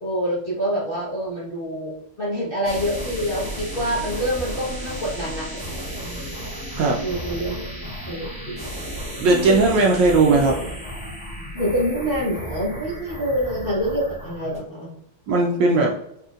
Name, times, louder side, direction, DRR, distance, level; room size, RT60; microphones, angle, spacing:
voice 1, 0.0-1.9 2.2-6.3 7.0-8.7 9.2-9.6 10.3-10.7 11.5-14.9, equal, 40° left, -7 dB, 0.8 m, -27 dB
sound 1, 2.6-14.6, equal, 5° right, 0.6 m, -33 dB
voice 2, 9.2-10.5 15.3-15.9, right 3 dB, 75° right, 0 dB, 1.1 m, -17 dB
4.2 x 3.5 x 2.4 m, 0.75 s
omnidirectional pair, 2.4 m